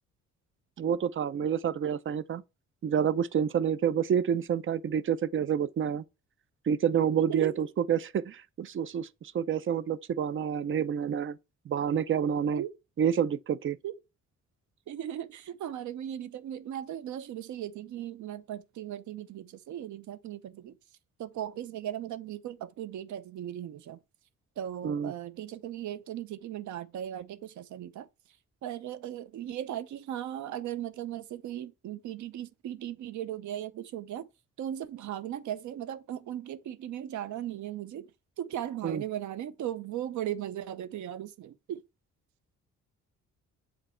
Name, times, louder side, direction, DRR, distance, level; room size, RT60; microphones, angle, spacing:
voice 1, 0.8-2.4 2.8-6.0 6.7-11.4 11.7-12.6 13.0-13.8 24.8-25.1 38.8-39.0, right 8 dB, 40° right, 0.6 m, -28 dB
voice 2, 7.3-7.6 12.5-12.7 13.8-14.0 14.9-20.8 21.2-24.0 24.6-28.1 28.6-34.3 34.6-38.1 38.4-41.8, right 11 dB, 75° right, 0.8 m, -37 dB
7.8 x 4.0 x 4.3 m
cardioid pair, 90°, 30 cm